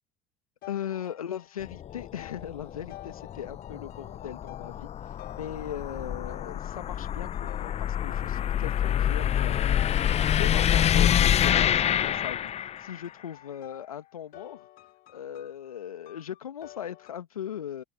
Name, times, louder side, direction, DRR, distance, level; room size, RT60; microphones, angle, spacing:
sound 1, 0.6-6.4 7.0-8.7 9.8-17.1, left 15 dB, 55° left, 2.6 m, -50 dB
voice 1, 0.7-14.7 15.1-17.8, left 9 dB, 85° left, 1.9 m, -39 dB
sound 2, 1.6-13.0, left 10 dB, 35° left, 0.8 m, -27 dB
open air
hypercardioid pair, 70°, 18 cm